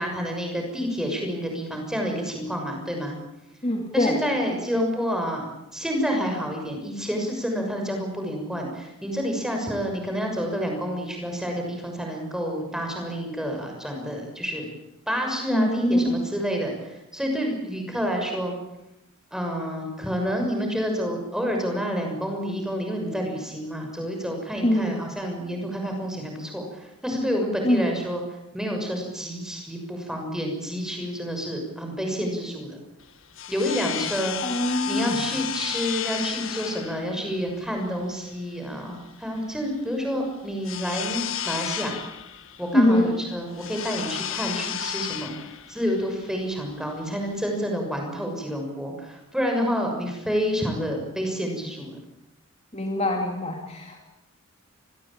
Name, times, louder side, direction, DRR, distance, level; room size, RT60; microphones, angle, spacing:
voice 1, 0.0-3.1 3.9-14.7 15.1-18.6 19.3-28.2 28.5-32.8 33.5-34.4 34.9-41.9 42.6-52.0, equal, 5° right, 2 dB, 6.4 m, -29 dB
voice 2, 3.6-4.2 15.5-16.2 24.6-25.0 27.6-27.9 34.4-35.2 42.7-43.1 52.7-54.0, left 1 dB, 30° left, 2 dB, 2.7 m, -23 dB
sound 1, 33.0-47.6, left 9 dB, 65° left, 1.7 m, -34 dB
26.5 x 20.5 x 8.9 m, 0.90 s
head